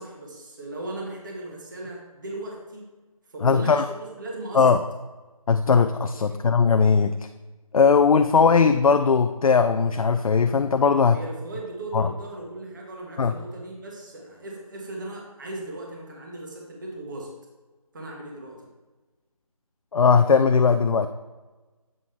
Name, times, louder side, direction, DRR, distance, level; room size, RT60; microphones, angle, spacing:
voice 1, 0.0-2.8 3.3-4.7 6.1-6.4 11.1-17.3 17.9-18.7, right 2 dB, 35° right, -1 dB, 1.5 m, -37 dB
voice 2, 3.4-3.8 4.5-4.8 5.5-7.1 7.7-11.2 11.9-12.1 13.2-13.3 19.9-21.1, left 5 dB, 65° left, 9 dB, 0.4 m, -19 dB
7.7 x 6.1 x 3.4 m, 1.2 s
figure-of-eight pair, 165°, 19 cm